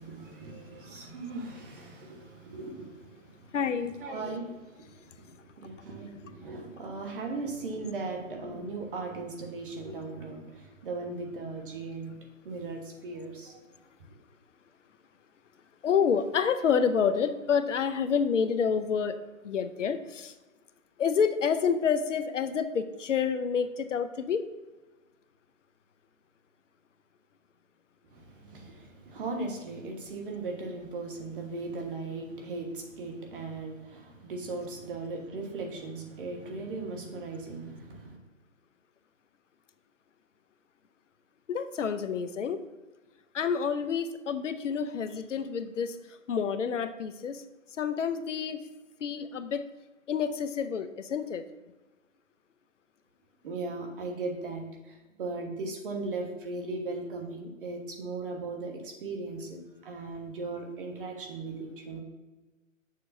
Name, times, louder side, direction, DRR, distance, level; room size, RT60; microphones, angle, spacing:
voice 1, 0.0-3.2 4.0-4.5 5.6-12.1 12.4-13.6 28.1-38.2 53.4-62.0, right 3 dB, 40° right, 2 dB, 1.4 m, -38 dB
voice 2, 3.5-4.0 15.8-20.3 21.0-24.5 41.5-42.6 43.3-46.0 46.3-47.4 47.8-48.6 49.0-49.6 50.1-51.4, left 6 dB, 65° left, 10 dB, 0.7 m, -28 dB
7.4 x 6.8 x 2.7 m, 1.2 s
hypercardioid pair, 145°, 41 cm